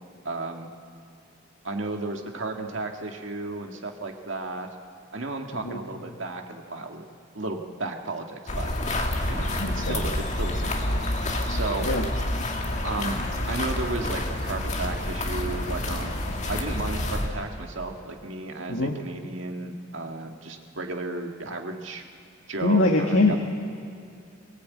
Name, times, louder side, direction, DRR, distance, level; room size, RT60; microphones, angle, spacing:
voice 1, 0.2-0.7 1.6-4.7 5.1-7.0 7.3-8.7 9.3-11.1 11.5-11.9 12.8-13.2 13.5-16.1 16.5-22.0 22.5-23.4, right 2 dB, 65° right, 3 dB, 1.8 m, -33 dB
sound 1, 8.5-17.3, left 1 dB, 35° left, 2.0 m, -28 dB
voice 2, 9.6-10.0 11.8-12.0 18.7-18.9 22.6-23.4, left 2 dB, 80° left, 1 dB, 1.6 m, -23 dB
21.5 x 18.5 x 8.5 m, 2.4 s
head